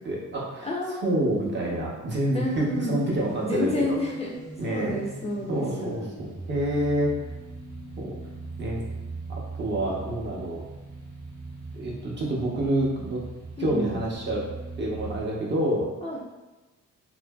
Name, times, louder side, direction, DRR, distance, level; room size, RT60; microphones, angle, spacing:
voice 1, 0.0-4.0 4.6-5.0 5.5-7.1 8.0-8.1 8.6-8.8 9.3-10.6 11.7-13.2 13.6-14.5 14.8-15.9, right 1 dB, 35° right, -3 dB, 0.7 m, -28 dB
voice 2, 0.6-1.8 2.3-3.0 3.4-4.3 4.7-6.1 13.6-14.0 16.0-16.2, left 1 dB, 20° left, -4 dB, 0.4 m, -30 dB
sound 1, 2.5-15.2, right 3 dB, 80° right, 1.0 m, -40 dB
2.7 x 2.5 x 2.2 m, 1.1 s
cardioid pair, 90°, 30 cm